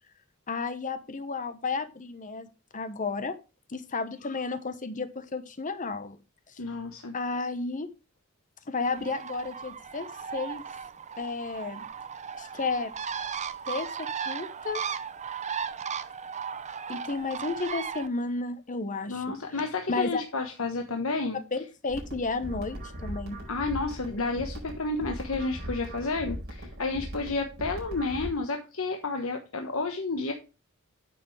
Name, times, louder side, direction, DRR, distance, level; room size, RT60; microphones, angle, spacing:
voice 1, 0.5-3.4 3.7-6.2 6.5-6.6 7.1-7.9 8.7-10.6 11.2-11.8 12.3-12.9 13.7-14.8 16.9-20.2 21.5-23.4, left 3 dB, 40° left, 11 dB, 1.0 m, -33 dB
voice 2, 6.6-7.1 19.1-21.4 23.5-30.3, left 3 dB, 70° left, 4 dB, 1.1 m, -31 dB
Bird, 8.9-18.1, right 7 dB, 35° right, 0.6 m, -36 dB
sound 1, 21.9-28.3, equal, 50° right, 4.5 m, -39 dB
9.3 x 6.8 x 3.2 m, 0.31 s
head